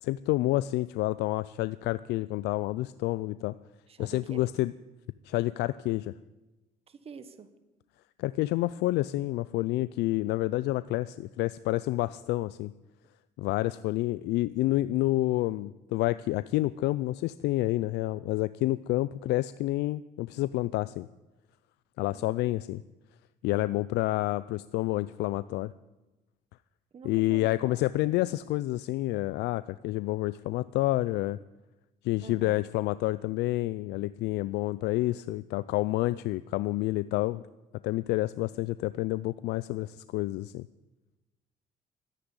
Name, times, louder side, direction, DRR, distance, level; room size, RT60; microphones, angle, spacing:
voice 1, 0.0-3.5 4.0-4.7 5.2-6.1 8.2-12.7 13.4-21.1 22.0-22.8 23.4-25.7 27.0-31.4 32.0-37.4 37.8-40.7, left 17 dB, 80° left, 16 dB, 0.4 m, -29 dB
voice 2, 3.9-4.5 6.9-7.5 22.1-22.4 23.5-23.8 26.9-27.8 32.2-32.6, right 6 dB, 35° right, 11 dB, 1.3 m, -47 dB
13.5 x 10.0 x 9.6 m, 1.1 s
cardioid pair, 110°, 17 cm